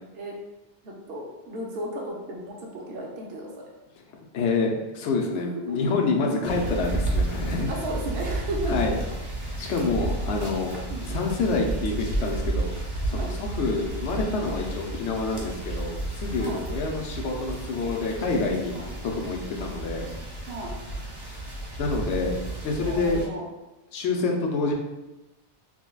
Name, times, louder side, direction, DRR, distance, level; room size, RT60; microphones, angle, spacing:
voice 1, 0.8-3.5 5.7-5.8 7.7-8.7 10.9-11.1 13.1-13.3 16.4-16.6 18.7-18.9 20.5-20.8 22.8-23.5, right 1 dB, 65° right, -2 dB, 0.9 m, -34 dB
voice 2, 4.1-7.7 8.7-9.0 9.6-10.7 11.1-12.7 13.1-18.8 19.0-20.1 21.8-22.3 22.6-23.2 23.9-24.7, left 3 dB, 75° left, 0 dB, 0.9 m, -27 dB
sound 1, 6.4-23.2, right 2 dB, 25° right, 0.6 m, -32 dB
5.9 x 2.2 x 2.3 m, 1.0 s
omnidirectional pair, 1.2 m